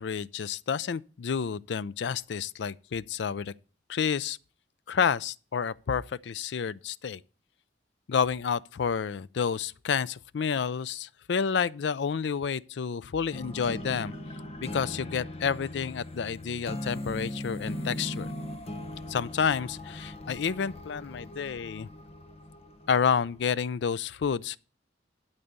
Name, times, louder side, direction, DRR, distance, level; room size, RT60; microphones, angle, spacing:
voice 1, 0.0-3.5 3.9-4.4 4.9-7.2 8.1-14.1 14.6-18.3 19.1-21.9 22.9-24.6, left 6 dB, 65° left, 0.4 m, -30 dB
sound 1, 13.3-23.5, left 1 dB, 35° left, 0.9 m, -39 dB
12.0 x 4.1 x 8.1 m
head